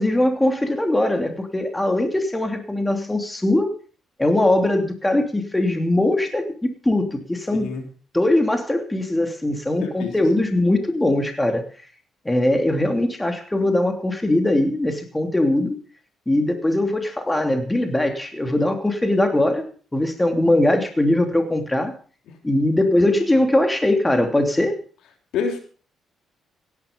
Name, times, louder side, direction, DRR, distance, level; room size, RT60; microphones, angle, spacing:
voice 1, 0.0-3.7 4.2-6.5 6.8-7.7 8.1-11.6 12.2-15.8 16.3-19.7 19.9-21.9 22.4-24.7, left 1 dB, 10° left, 5 dB, 2.9 m, -21 dB
voice 2, 7.5-7.8 9.8-10.2 22.3-22.4 25.3-25.6, left 6 dB, 80° left, 4 dB, 3.4 m, -27 dB
17.0 x 11.0 x 5.3 m, 0.40 s
cardioid pair, 90°, 0 cm